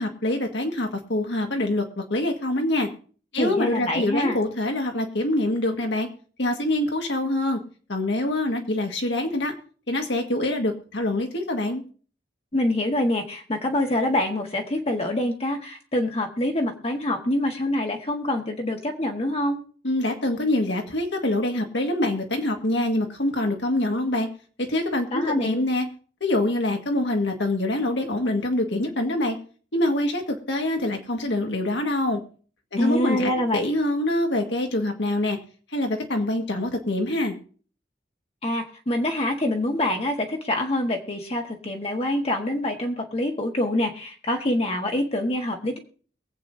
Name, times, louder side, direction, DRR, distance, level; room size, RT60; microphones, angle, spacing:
voice 1, 0.0-1.8 2.1-2.9 3.3-6.1 6.4-7.6 7.9-9.5 9.9-11.8 19.8-24.3 24.6-25.9 26.2-29.4 29.7-32.2 32.7-35.4 35.7-37.3, left 1 dB, 80° left, 3 dB, 1.9 m, -25 dB
voice 2, 3.4-4.4 12.5-19.6 25.1-25.5 32.8-33.6 38.4-45.8, left 1 dB, 35° left, 2 dB, 1.5 m, -25 dB
23.0 x 8.3 x 2.8 m, 0.43 s
head